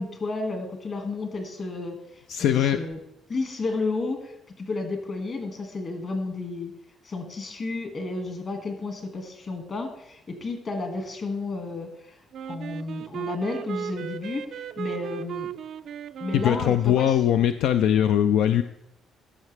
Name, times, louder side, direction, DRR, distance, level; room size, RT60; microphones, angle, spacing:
voice 1, 0.0-3.0 3.3-6.7 7.0-12.2 12.5-15.5 16.2-17.2, left 3 dB, 45° left, 4 dB, 1.8 m, -32 dB
voice 2, 2.3-2.8 16.3-18.6, left 10 dB, 80° left, 9 dB, 0.3 m, -21 dB
Wind instrument woodwind instrument, 12.3-17.1, right 9 dB, 65° right, 0.3 m, -36 dB
13.5 x 5.7 x 3.3 m, 0.81 s
cardioid pair, 100°, 0 cm